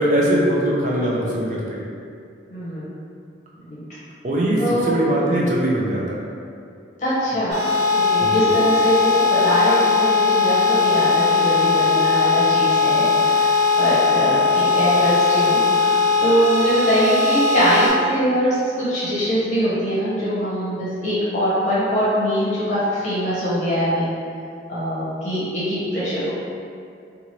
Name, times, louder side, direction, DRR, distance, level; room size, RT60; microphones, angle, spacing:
voice 1, 0.0-1.8 4.2-6.2 8.2-8.5, right 1 dB, 40° right, -4 dB, 0.5 m, -21 dB
voice 2, 2.5-2.9 3.6-3.8 4.6-5.0 7.0-7.7 7.9-13.5 13.8-15.8 16.2-24.1 24.7-26.3, equal, 40° left, -10 dB, 0.8 m, -22 dB
sound 1, 7.5-17.9, left 4 dB, 90° right, 1.0 m, -19 dB
2.8 x 2.5 x 2.9 m, 2.4 s
head